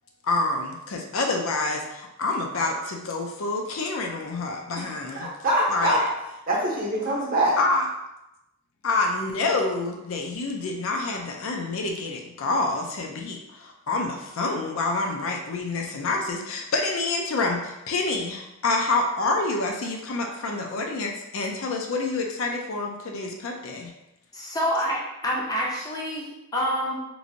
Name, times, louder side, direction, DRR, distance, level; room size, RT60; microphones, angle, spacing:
voice 1, 0.3-5.3 5.7-6.0 7.6-7.9 8.8-23.9, left 3 dB, 70° left, 2 dB, 0.5 m, -27 dB
voice 2, 5.1-6.1 6.5-7.6, right 1 dB, 40° right, -3 dB, 0.8 m, -24 dB
voice 3, 24.3-27.0, equal, 15° left, -3 dB, 0.5 m, -27 dB
3.1 x 2.5 x 2.6 m, 0.89 s
head